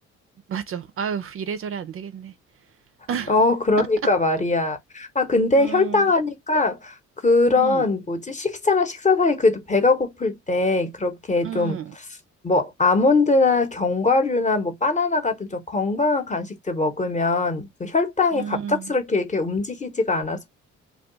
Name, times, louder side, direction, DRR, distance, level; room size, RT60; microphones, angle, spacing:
voice 1, 0.5-2.3 3.1-3.4 3.8-3.9 5.6-6.1 7.5-7.9 11.4-12.0 18.3-18.9, right 7 dB, 45° right, 0.4 m, -31 dB
voice 2, 3.3-6.9 7.2-11.8 12.4-20.5, left 3 dB, 25° left, 0.8 m, -21 dB
2.3 x 2.3 x 3.7 m
cardioid pair, 90°, 30 cm